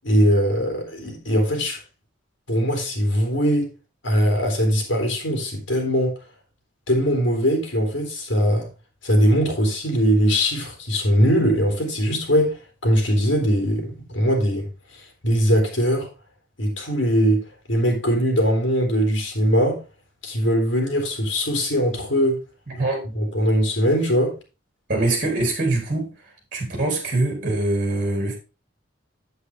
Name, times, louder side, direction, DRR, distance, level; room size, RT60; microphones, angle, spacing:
voice 1, 0.0-1.8 2.5-3.7 4.0-6.1 6.9-8.7 9.0-14.7 14.9-16.1 16.6-19.8 20.2-22.4 23.2-24.3, equal, 80° left, 3.4 m, -21 dB
voice 2, 22.7-23.1 24.9-26.1 26.5-28.3, right 2 dB, 45° right, 3.6 m, -23 dB
8.1 x 7.9 x 3.6 m
head